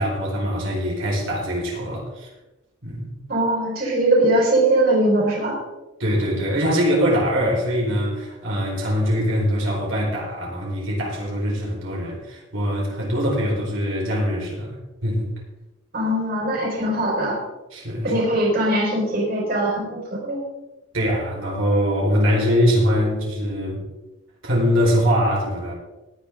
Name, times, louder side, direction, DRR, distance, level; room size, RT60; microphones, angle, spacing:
voice 1, 0.0-2.3 2.8-3.2 6.0-14.8 15.0-15.3 17.7-18.1 20.9-23.8 24.4-25.7, equal, 85° right, -3 dB, 4.8 m, -22 dB
voice 2, 3.3-5.6 15.9-17.4 18.0-20.4, right 1 dB, 50° right, -3 dB, 4.9 m, -21 dB
18.5 x 10.5 x 3.9 m, 1.0 s
head